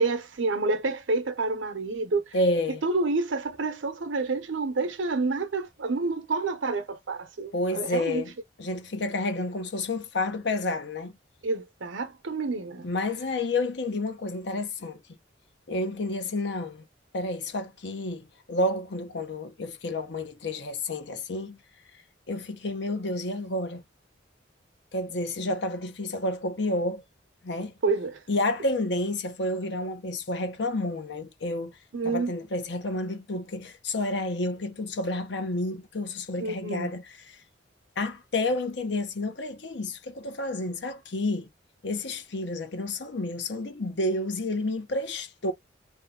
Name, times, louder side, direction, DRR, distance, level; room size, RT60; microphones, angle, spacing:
voice 1, 0.0-2.3 2.7-8.2 11.4-12.9 27.8-28.2 31.9-32.3 36.4-36.9, right 3 dB, 85° right, 0.7 m, -28 dB
voice 2, 2.3-2.8 7.5-8.3 8.6-11.1 12.8-15.0 15.7-16.8 17.1-21.6 22.3-23.8 24.9-27.0 27.4-27.7 28.3-31.7 32.0-37.0 37.3-37.4 38.0-41.5 41.8-45.5, left 2 dB, 65° left, 0.7 m, -30 dB
2.7 x 2.3 x 3.6 m
head